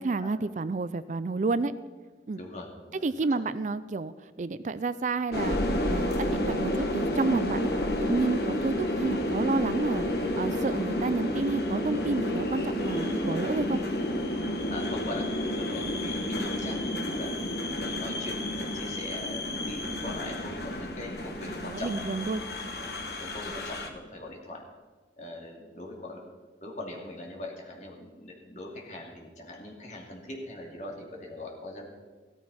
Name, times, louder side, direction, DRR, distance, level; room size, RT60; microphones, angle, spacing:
voice 1, 0.0-1.7 2.3-2.4 3.0-5.6 5.9-7.7 8.0-10.1 10.3-13.8 21.4-22.4, right 3 dB, 45° right, 15 dB, 0.4 m, -30 dB
voice 2, 2.4-3.4 14.7-17.3 17.8-22.2 23.2-24.6 25.2-26.2 26.6-31.8, left 1 dB, 40° left, -1 dB, 2.7 m, -41 dB
sound 1, 5.3-23.9, left 1 dB, 60° left, 1.4 m, -30 dB
15.5 x 14.0 x 4.3 m, 1.4 s
head